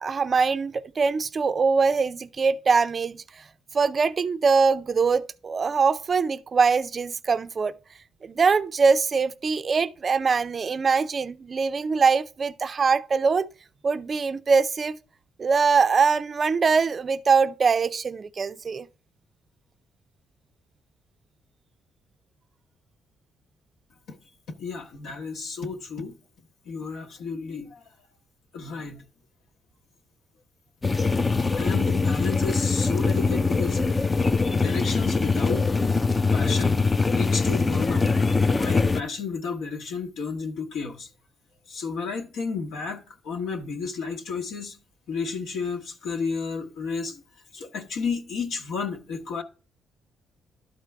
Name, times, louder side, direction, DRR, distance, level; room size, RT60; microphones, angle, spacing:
voice 1, 0.0-3.4 3.7-7.7 8.2-13.5 13.8-15.0 15.4-18.9, right 5 dB, 40° right, 0.4 m, -23 dB
voice 2, 24.5-26.1 26.6-27.8 28.5-29.0 31.6-34.2 34.5-35.7 36.3-41.1 41.7-44.8 45.1-47.2 47.5-49.4, left 5 dB, 80° left, 1.1 m, -32 dB
sound 1, 30.8-39.0, left 4 dB, 25° left, 0.4 m, -23 dB
12.0 x 4.5 x 3.3 m
cardioid pair, 90°, 0 cm